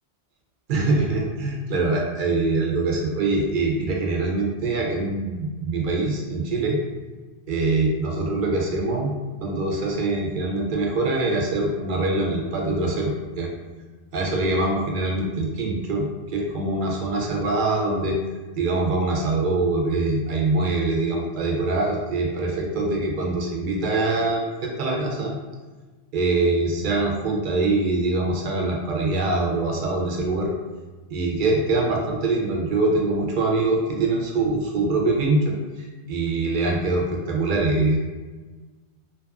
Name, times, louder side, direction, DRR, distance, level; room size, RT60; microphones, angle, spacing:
voice 1, 0.7-6.8 7.5-9.1 9.4-13.5 14.1-18.2 18.6-25.4 26.1-30.5 31.1-38.0, right 2 dB, 60° right, -1 dB, 0.6 m, -24 dB
2.6 x 2.3 x 2.3 m, 1.3 s
omnidirectional pair, 1.2 m